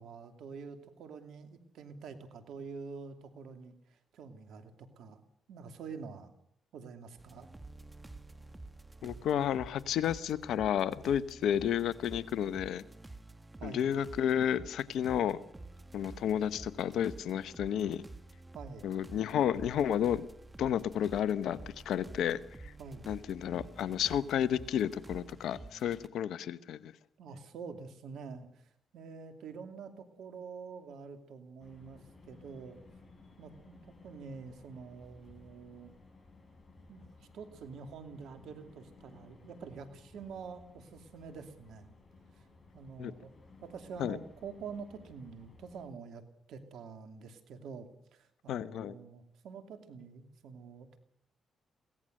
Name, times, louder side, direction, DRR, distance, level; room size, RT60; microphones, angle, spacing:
voice 1, 0.0-5.2 5.5-6.3 6.7-7.5 13.6-13.9 18.5-18.9 22.8-23.1 27.2-32.8 33.4-35.9 36.9-37.1 37.3-41.9 42.7-43.3 43.6-46.2 46.5-51.0, right 5 dB, 75° right, 8 dB, 2.6 m, -47 dB
sound 1, 7.2-26.1, right 2 dB, 20° right, 2.0 m, -50 dB
voice 2, 9.0-12.8 13.6-15.4 15.9-18.0 18.8-20.3 20.6-21.6 21.8-22.7 23.1-26.9 43.0-43.1 44.0-44.2 48.5-49.0, left 9 dB, 75° left, 16 dB, 1.0 m, -31 dB
sound 2, 31.6-45.9, left 3 dB, 35° left, 7.8 m, -58 dB
22.5 x 17.5 x 6.6 m, 0.68 s
supercardioid pair, 55°, 0 cm